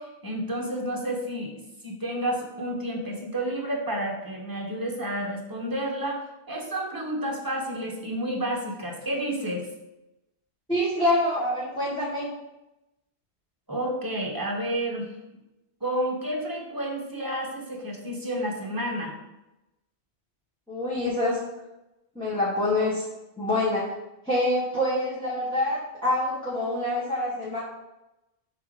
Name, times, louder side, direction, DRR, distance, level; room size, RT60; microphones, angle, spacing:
voice 1, 0.0-1.5 1.8-6.2 6.5-9.7 13.7-15.1 15.8-19.1, right 1 dB, 20° right, -1 dB, 1.1 m, -30 dB
voice 2, 10.7-12.3 20.7-21.4 22.1-23.0 23.4-23.9 24.2-27.6, left 1 dB, 5° left, -9 dB, 1.4 m, -26 dB
5.6 x 3.8 x 5.0 m, 0.94 s
omnidirectional pair, 1.1 m